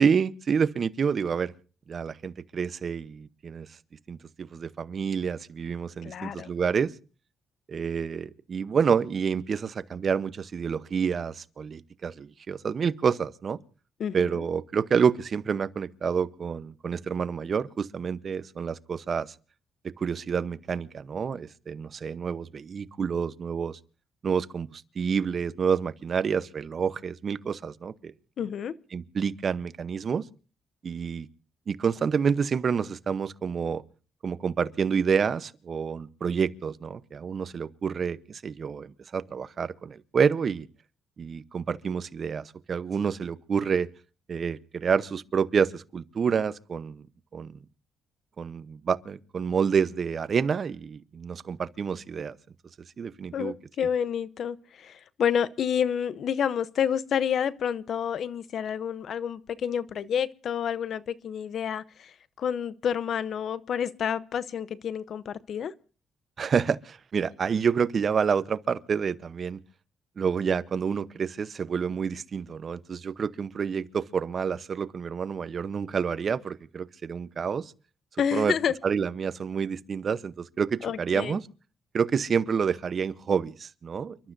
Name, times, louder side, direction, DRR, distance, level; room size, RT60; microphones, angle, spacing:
voice 1, 0.0-1.5 1.9-3.7 4.1-6.9 7.7-13.6 14.1-19.3 20.0-23.8 24.2-28.1 28.9-30.2 30.8-31.3 31.7-33.8 34.2-40.7 41.2-43.9 44.3-47.1 47.3-47.6 48.4-52.4 53.0-53.5 66.4-69.6 70.2-77.7 78.3-78.5 78.8-81.5 81.9-84.3, right 6 dB, 50° right, 0.8 m, -28 dB
voice 2, 6.0-6.5 14.0-14.4 28.4-28.7 53.3-65.7 78.2-78.7 80.8-81.4, left 8 dB, 65° left, 0.7 m, -29 dB
30.0 x 12.5 x 2.6 m
cardioid pair, 85°, 0 cm